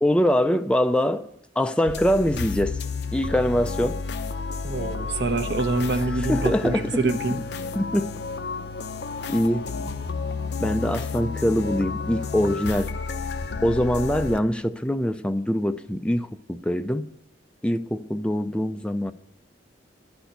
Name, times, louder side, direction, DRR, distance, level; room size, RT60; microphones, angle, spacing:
voice 1, 0.0-1.3 1.6-2.8 3.1-4.0 6.3-7.0 7.8-8.1 9.3-9.6 10.6-12.9 13.6-17.1 17.6-19.1, equal, 5° left, 0.4 m, -23 dB
sound 1, 1.9-14.4, left 4 dB, 60° left, 0.6 m, -31 dB
voice 2, 4.6-7.4, right 3 dB, 65° right, 0.9 m, -26 dB
11.0 x 4.4 x 8.0 m
head